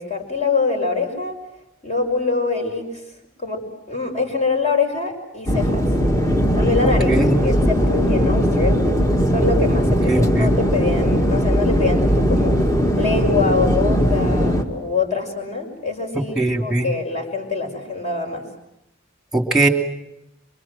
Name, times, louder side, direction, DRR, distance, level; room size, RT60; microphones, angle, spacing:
voice 1, 0.0-1.4 1.8-3.0 3.4-5.9 6.5-8.8 9.3-12.6 13.0-18.4, left 4 dB, 35° left, 2 dB, 5.8 m, -24 dB
sound 1, 5.5-14.6, equal, 15° left, 2.1 m, -19 dB
voice 2, 10.1-10.5 16.4-16.9 19.3-19.7, right 2 dB, ahead, 5 dB, 2.9 m, -19 dB
26.5 x 24.5 x 7.7 m, 0.86 s
head